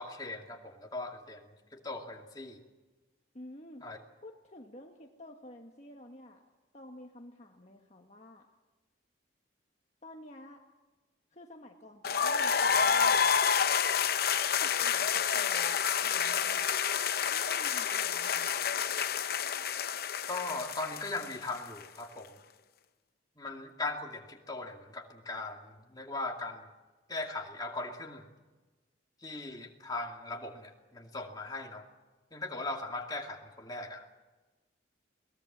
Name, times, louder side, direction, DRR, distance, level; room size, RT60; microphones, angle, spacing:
voice 1, 0.0-2.6 3.8-4.0 20.3-22.3 23.4-26.7 27.1-28.3 29.2-31.8 32.3-34.2, left 2 dB, 20° left, 1 dB, 2.4 m, -39 dB
voice 2, 3.3-3.9 4.2-6.4 6.7-8.5 10.0-10.6 11.3-13.2 14.5-16.7 17.2-18.5, left 1 dB, 35° left, 2 dB, 1.5 m, -51 dB
sound 1, 12.0-21.8, left 7 dB, 50° left, 0.7 m, -29 dB
22.5 x 19.0 x 7.4 m, 1.2 s
head